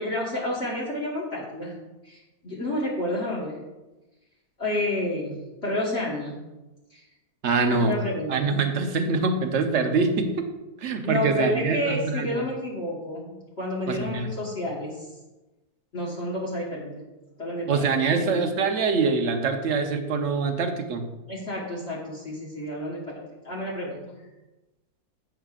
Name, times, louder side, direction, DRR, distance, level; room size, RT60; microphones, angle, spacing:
voice 1, 0.0-1.8 2.0-3.6 4.6-6.4 6.9-7.0 7.8-8.4 11.0-15.1 15.9-17.0 17.4-17.9 18.1-18.5 21.3-24.2, left 1 dB, 45° left, -5 dB, 1.6 m, -30 dB
voice 2, 7.4-7.9 8.3-10.5 10.8-12.4 13.9-14.3 17.7-21.0, right 4 dB, 55° right, 6 dB, 1.0 m, -24 dB
10.5 x 7.9 x 2.5 m, 1.1 s
omnidirectional pair, 1.6 m